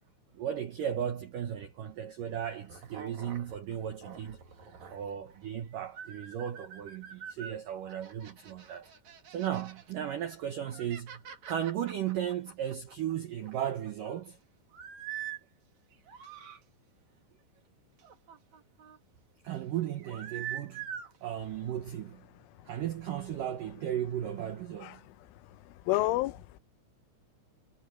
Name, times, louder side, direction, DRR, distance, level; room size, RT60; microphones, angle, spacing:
voice 1, 0.3-4.4 4.9-8.9 9.3-14.4 19.4-20.9 21.2-22.2 22.7-25.0, right 10 dB, 80° right, 1.9 m, -35 dB
sound 1, 2.5-5.5 5.9-7.6 7.9-9.9 10.4-13.1 13.4-14.2 14.7-15.4 15.9-16.6 18.0-19.0 19.9-21.2, right 9 dB, 45° right, 3.2 m, -45 dB
voice 2, 25.9-26.6, left 17 dB, 85° left, 3.3 m, -29 dB
omnidirectional pair, 5.7 m